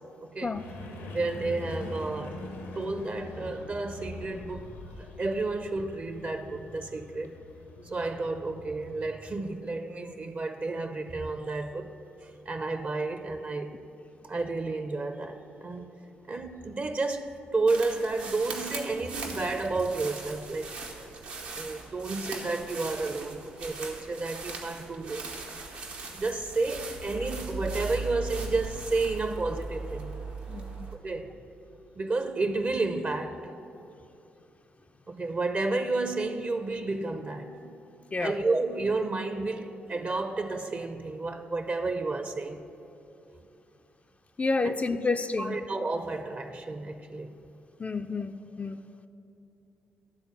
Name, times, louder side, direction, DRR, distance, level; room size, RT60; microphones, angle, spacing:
voice 1, 0.2-0.6 1.1-2.4 2.8-7.4 7.8-11.9 12.2-13.8 14.3-16.0 16.3-20.7 21.4-25.3 26.1-30.1 30.9-31.3 32.0-33.4 35.1-37.8 38.2-42.6 44.6-44.7 45.4-47.4, right 3 dB, 35° right, 0.5 m, -31 dB
sound 1, 0.5-9.1, left 1 dB, 80° left, 0.9 m, -43 dB
sound 2, 17.7-30.9, right 3 dB, 85° right, 1.0 m, -39 dB
voice 2, 30.5-30.9 38.1-38.3 44.4-45.6 47.8-48.9, left 3 dB, 30° left, 0.3 m, -30 dB
11.5 x 4.0 x 6.9 m
hypercardioid pair, 40°, 5 cm